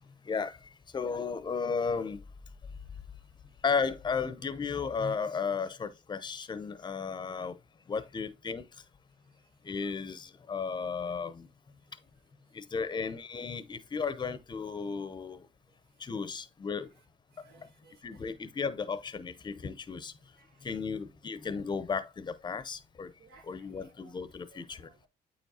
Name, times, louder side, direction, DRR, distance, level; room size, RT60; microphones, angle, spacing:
voice 1, 0.2-2.2 3.6-7.6 7.9-8.6 9.6-11.5 12.5-15.5 16.0-16.9 18.0-20.1 20.6-23.1 23.4-24.9, left 5 dB, 25° left, 0.7 m, -34 dB
voice 2, 17.4-18.3 20.4-20.5 23.2-24.1 24.5-25.1, right 4 dB, 70° right, 2.0 m, -60 dB
8.7 x 4.6 x 2.8 m
cardioid pair, 110°, 17 cm